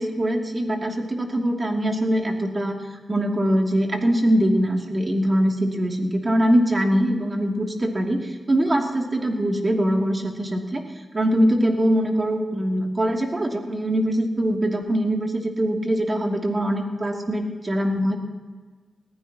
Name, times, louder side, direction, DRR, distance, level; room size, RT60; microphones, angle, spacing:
voice 1, 0.0-10.8 11.1-18.2, equal, 35° right, 1 dB, 2.7 m, -22 dB
21.0 x 15.5 x 3.0 m, 1.4 s
cardioid pair, 65°, 0 cm